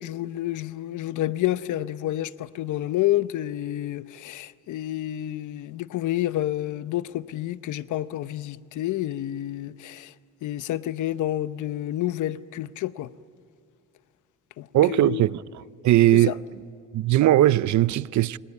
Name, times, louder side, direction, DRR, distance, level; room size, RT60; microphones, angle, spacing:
voice 1, 0.0-10.1 10.4-13.1 14.6-15.2 16.1-16.3, left 14 dB, 80° left, 0.8 m, -29 dB
voice 2, 14.7-15.4 15.8-16.4 16.9-18.4, right 14 dB, 70° right, 0.7 m, -19 dB
27.0 x 25.0 x 8.3 m
cardioid pair, 90°, 30 cm